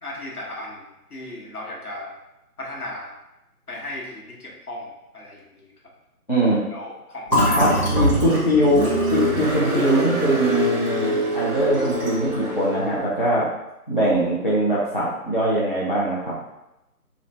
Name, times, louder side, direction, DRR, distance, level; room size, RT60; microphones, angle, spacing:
voice 1, 0.0-2.1 2.6-3.1 3.7-5.7 6.7-7.7, left 1 dB, 75° left, -3 dB, 1.2 m, -36 dB
voice 2, 6.3-6.6 7.6-8.8 9.1-13.5 13.9-16.4, right 1 dB, 35° left, -7 dB, 0.6 m, -21 dB
Fill (with liquid), 7.3-10.9 11.3-11.4 11.7-12.3, left 1 dB, 5° left, 1.4 m, -25 dB
Car, 7.6-13.0, right 1 dB, 50° right, 0.8 m, -25 dB
3.4 x 2.4 x 3.2 m, 0.92 s
figure-of-eight pair, 155°, 46 cm